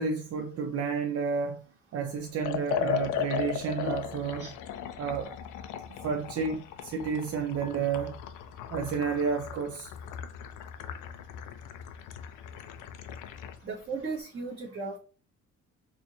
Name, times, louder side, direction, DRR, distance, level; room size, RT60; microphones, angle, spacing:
voice 1, 0.0-1.6 1.9-4.5 5.0-5.3 6.0-8.2 8.7-9.9, right 5 dB, 55° right, 0.5 m, -31 dB
Liquid, 2.4-13.6, left 8 dB, 90° left, 0.5 m, -37 dB
voice 2, 13.6-15.0, right 4 dB, 40° right, 1.1 m, -36 dB
4.4 x 2.7 x 2.6 m
cardioid pair, 90°, 30 cm